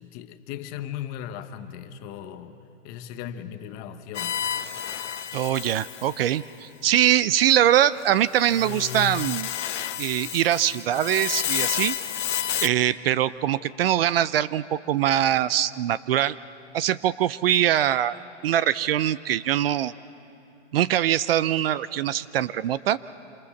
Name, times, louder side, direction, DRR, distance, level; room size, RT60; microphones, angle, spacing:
voice 1, 0.0-2.6 2.8-4.4, left 10 dB, 25° left, 9 dB, 0.9 m, -37 dB
sound 1, 4.1-6.4 8.3-12.7, left 10 dB, 75° left, 1.2 m, -30 dB
voice 2, 5.3-9.5 10.0-12.0 12.6-16.4 16.7-18.2 18.4-19.9 20.7-23.0, right 11 dB, 55° right, 17 dB, 0.6 m, -23 dB
27.5 x 25.0 x 7.1 m, 2.7 s
hypercardioid pair, 150°, 36 cm